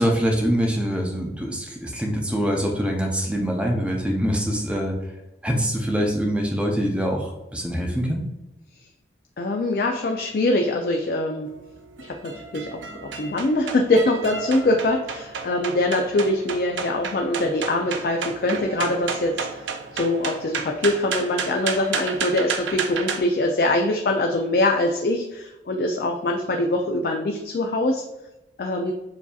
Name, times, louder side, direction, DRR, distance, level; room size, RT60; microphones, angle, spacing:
voice 1, 0.0-5.0 5.4-8.2, equal, 5° right, 0 dB, 0.5 m, -24 dB
voice 2, 9.4-11.5 12.0-19.6 19.9-28.0 28.6-28.9, left 2 dB, 55° left, 2 dB, 0.4 m, -23 dB
sound 1, 11.5-23.2, right 5 dB, 85° right, 0.5 m, -32 dB
6.9 x 2.7 x 2.3 m, 0.98 s
head